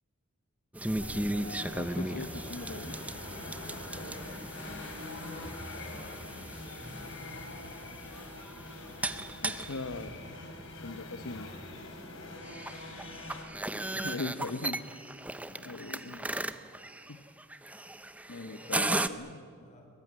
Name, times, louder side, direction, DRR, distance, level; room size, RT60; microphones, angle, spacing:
sound 1, 0.7-19.1, right 1 dB, 5° right, 0.7 m, -37 dB
sound 2, 1.0-13.4, left 2 dB, 60° left, 4.1 m, -44 dB
voice 1, 1.8-3.0 9.4-10.2 10.7-11.5 14.0-14.8 15.6-16.3 17.1-17.2 18.3-19.5, left 3 dB, 85° left, 8 dB, 1.0 m, -40 dB
voice 2, 3.6-7.4 12.3-12.6 13.8-14.3 15.5-15.9 17.0-17.4 18.3-19.1 19.6-19.9, left 1 dB, 35° left, 2 dB, 5.0 m, -56 dB
22.0 x 21.0 x 9.3 m, 2.3 s
head